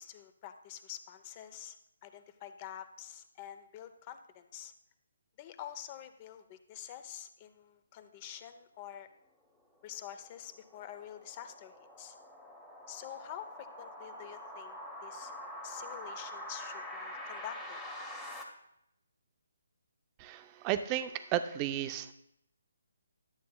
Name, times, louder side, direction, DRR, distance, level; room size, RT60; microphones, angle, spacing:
voice 1, 0.0-1.8 2.0-4.7 5.4-9.1 9.8-12.2 12.9-15.3 15.6-17.8, left 10 dB, 25° left, 10 dB, 0.6 m, -47 dB
sound 1, 9.8-18.4, left 1 dB, ahead, 1.0 m, -45 dB
voice 2, 20.2-22.1, right 11 dB, 20° right, 11 dB, 0.4 m, -33 dB
11.0 x 8.3 x 2.2 m, 0.79 s
hypercardioid pair, 155°, 0 cm